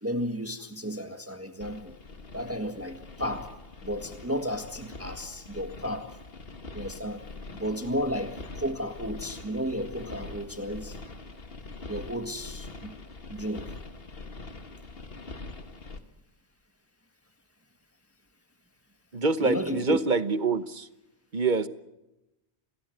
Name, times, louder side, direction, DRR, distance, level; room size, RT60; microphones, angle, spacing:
voice 1, 0.0-2.0 2.3-3.5 3.8-6.2 6.7-7.2 7.6-11.0 11.9-12.9 13.3-13.7 19.4-20.0, equal, 15° right, 6 dB, 1.7 m, -33 dB
sound 1, 1.6-16.0, left 3 dB, 60° left, 2.0 m, -43 dB
voice 2, 19.1-20.9 21.3-21.7, right 3 dB, 50° right, 12 dB, 1.2 m, -26 dB
28.5 x 19.0 x 8.0 m, 0.97 s
omnidirectional pair, 1.1 m